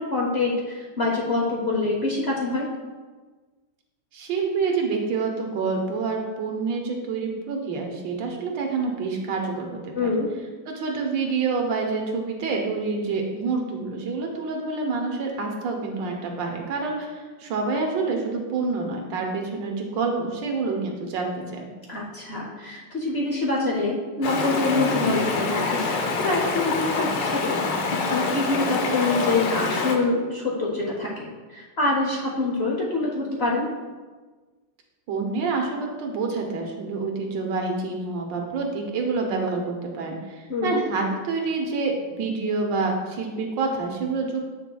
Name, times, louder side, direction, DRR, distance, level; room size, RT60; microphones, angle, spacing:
voice 1, 0.0-2.7 9.9-10.3 21.9-33.7 40.5-40.8, left 3 dB, 50° left, -3 dB, 0.7 m, -26 dB
voice 2, 4.1-10.1 10.7-21.6 35.1-44.5, right 4 dB, 85° right, 2 dB, 1.6 m, -27 dB
Stream, 24.2-30.0, left 3 dB, 80° left, 1.5 m, -25 dB
8.2 x 5.9 x 2.3 m, 1.4 s
omnidirectional pair, 2.0 m